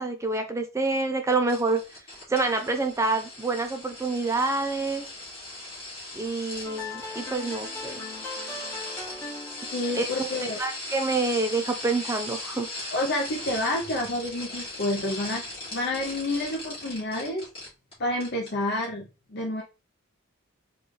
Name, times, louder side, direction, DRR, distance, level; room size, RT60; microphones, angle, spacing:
voice 1, 0.0-1.8 2.3-5.1 6.2-8.0 10.0-10.3 10.6-12.7, right 3 dB, 15° right, 6 dB, 0.3 m, -27 dB
sound 1, 1.5-17.9 18.2-18.5 18.8-18.9, left 2 dB, 30° left, 1.8 m, -38 dB
sound 2, 6.6-11.7, left 2 dB, 10° left, 0.9 m, -41 dB
voice 2, 9.7-10.6 12.9-15.4 15.7-17.5 18.0-19.6, left 1 dB, 50° left, 0 dB, 0.6 m, -29 dB
3.8 x 2.4 x 3.1 m, 0.29 s
head